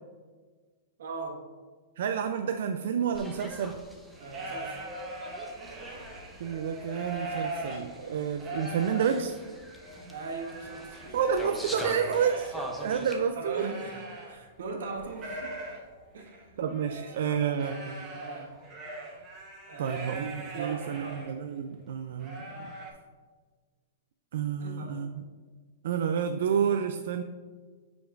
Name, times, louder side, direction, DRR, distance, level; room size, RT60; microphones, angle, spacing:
voice 1, 1.0-1.4 4.2-4.8 10.1-11.2 13.0-15.5 16.1-16.6 16.8-18.5 19.7-20.1 20.5-21.2 24.6-25.1, right 4 dB, 85° right, 0 dB, 1.5 m, -40 dB
voice 2, 2.0-3.8 6.4-9.4 11.1-13.6 16.6-18.1 19.8-22.4 24.3-25.1 25.8-27.2, right 7 dB, 70° right, 7 dB, 0.4 m, -29 dB
sound 1, 3.1-13.2, equal, ahead, 0.7 m, -44 dB
sound 2, 4.1-14.6 14.9-21.3 21.7-21.8 22.2-22.9, right 2 dB, 20° right, 1.2 m, -41 dB
9.1 x 5.2 x 2.5 m, 1.5 s
supercardioid pair, 160°, 0 cm